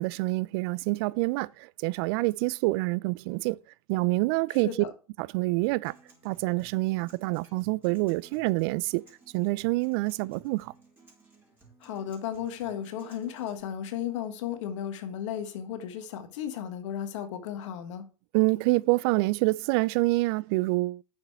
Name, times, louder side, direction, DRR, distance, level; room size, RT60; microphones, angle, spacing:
voice 1, 0.0-3.6 3.9-4.7 5.2-5.9 6.2-9.0 9.3-10.7 18.3-21.0, right 22 dB, 45° right, 0.5 m, -27 dB
Acoustic guitar, 5.6-13.6, right 3 dB, 10° right, 4.9 m, -58 dB
voice 2, 11.8-18.0, left 9 dB, 60° left, 1.5 m, -34 dB
9.4 x 6.6 x 4.6 m
hypercardioid pair, 115°, 18 cm